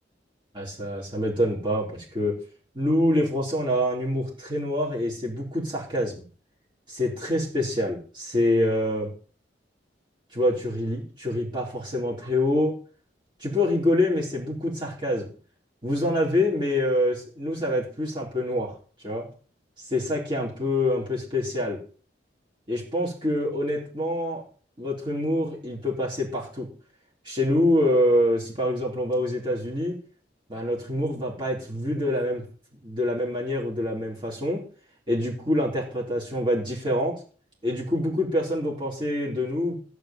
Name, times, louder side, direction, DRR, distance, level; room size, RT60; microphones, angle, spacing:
voice 1, 0.5-2.4 2.7-6.2 6.9-9.1 10.3-12.8 13.4-15.3 15.8-18.8 19.0-19.3 19.8-21.8 22.7-24.4 24.8-26.7 27.2-30.0 30.5-32.4 32.8-34.6 35.1-37.2 37.6-39.8, left 1 dB, 25° right, -4 dB, 4.0 m, -26 dB
15.0 x 5.0 x 9.2 m, 0.40 s
head